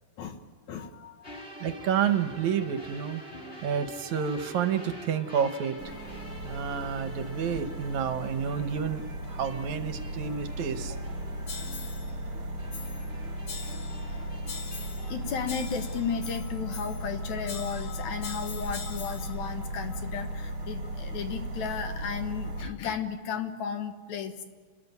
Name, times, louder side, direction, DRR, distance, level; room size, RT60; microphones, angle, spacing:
voice 1, 0.7-1.4 13.6-14.6 15.0-24.4, left 7 dB, 70° left, 7 dB, 2.7 m, -35 dB
sound 1, 1.2-16.3, equal, 20° left, 3.3 m, -47 dB
voice 2, 1.6-3.2 3.6-5.8 6.4-9.0 9.3-11.0, right 8 dB, 75° right, 9 dB, 2.3 m, -29 dB
sound 2, 5.8-22.7, right 1 dB, 40° right, 2.7 m, -36 dB
sound 3, 11.5-12.1 12.7-13.1 13.5-14.1 14.5-15.1 15.5-17.1 17.5-19.4, left 6 dB, 50° left, 1.0 m, -43 dB
29.5 x 13.5 x 9.5 m, 1.5 s
omnidirectional pair, 3.5 m